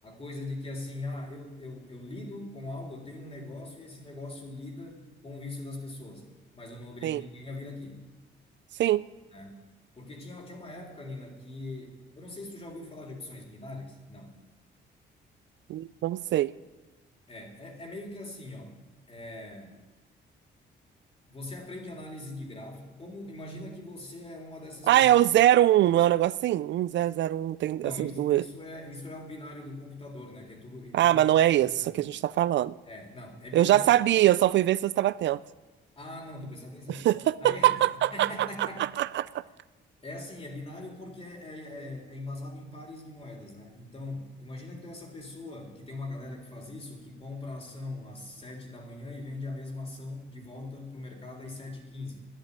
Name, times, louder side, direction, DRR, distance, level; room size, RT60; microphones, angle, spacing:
voice 1, 0.0-6.3 6.5-8.0 9.3-9.6 9.9-14.3 17.3-18.8 19.1-19.8 21.3-25.1 27.8-31.2 31.5-32.1 32.9-33.9 36.0-37.1 37.4-37.7 38.1-38.9 40.0-52.2, left 2 dB, 30° left, 1 dB, 3.7 m, -41 dB
voice 2, 15.7-16.5 24.9-28.4 30.9-32.7 33.5-35.4 36.9-39.4, right 13 dB, 65° right, 18 dB, 0.4 m, -23 dB
11.0 x 10.5 x 8.8 m, 1.2 s
cardioid pair, 90°, 20 cm